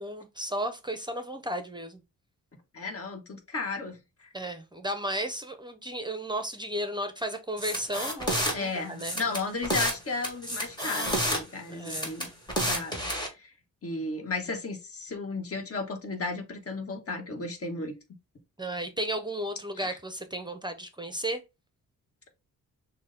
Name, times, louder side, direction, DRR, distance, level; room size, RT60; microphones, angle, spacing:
voice 1, 0.0-2.0 4.3-9.2 11.7-12.1 18.6-21.4, right 1 dB, 15° right, 0.6 m, -34 dB
voice 2, 2.7-4.3 8.5-12.3 12.6-13.5 13.8-17.9 19.8-20.0, left 3 dB, 45° left, 1.2 m, -34 dB
sound 1, 7.6-8.5 9.0-10.0 10.2-11.4 11.8-13.3, equal, 15° left, 1.8 m, -29 dB
6.2 x 2.2 x 3.8 m
wide cardioid pair, 105°, 34 cm